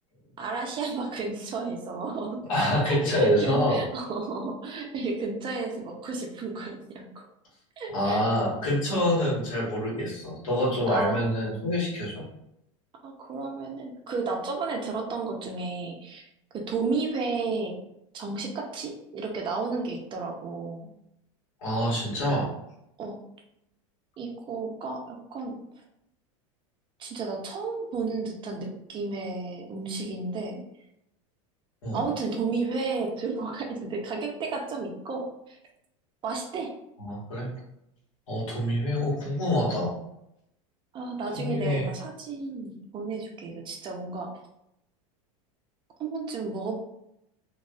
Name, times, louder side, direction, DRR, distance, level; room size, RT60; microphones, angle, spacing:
voice 1, 0.4-7.2 7.8-8.3 10.9-11.2 13.0-16.3 16.5-17.7 18.1-20.9 23.0-23.2 24.2-25.6 27.0-30.6 31.9-35.6 36.2-36.7 40.9-44.4 46.0-46.7, right 4 dB, 30° right, 2 dB, 0.5 m, -32 dB
voice 2, 2.5-3.8 7.9-12.2 21.6-22.5 31.8-32.0 37.0-37.5 38.3-40.0 41.3-41.9, left 1 dB, 85° left, -6 dB, 1.3 m, -26 dB
2.4 x 2.3 x 2.2 m, 0.80 s
supercardioid pair, 115°, 17 cm